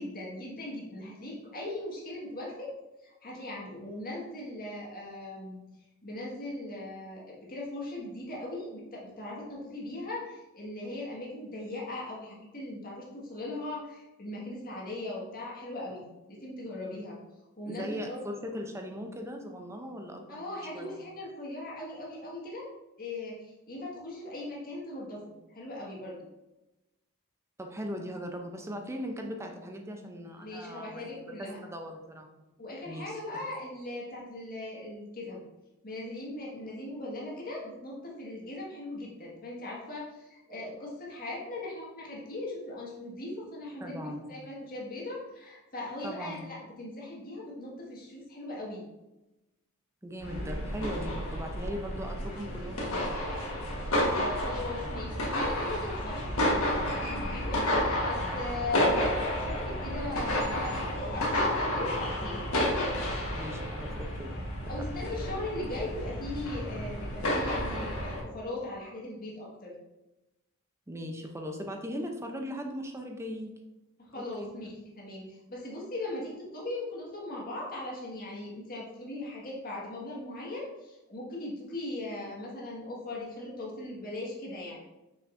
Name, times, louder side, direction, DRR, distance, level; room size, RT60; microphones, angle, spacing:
voice 1, 0.0-2.7 3.0-5.6 6.0-16.0 16.3-17.2 17.6-18.2 20.3-22.7 23.0-25.2 25.5-26.2 30.4-31.6 32.6-35.4 35.8-48.8 54.1-62.4 64.7-69.7 74.0-84.8, left 2 dB, 40° left, -4 dB, 1.7 m, -39 dB
voice 2, 17.6-21.0 27.6-32.3 32.9-33.2 43.8-44.3 46.0-46.5 50.0-53.2 63.3-64.4 64.9-65.0 70.9-73.5 74.1-74.5, equal, 10° right, 3 dB, 0.6 m, -39 dB
sound 1, 50.2-68.2, left 1 dB, 65° left, 1.4 m, -31 dB
6.2 x 5.8 x 2.6 m, 1.0 s
head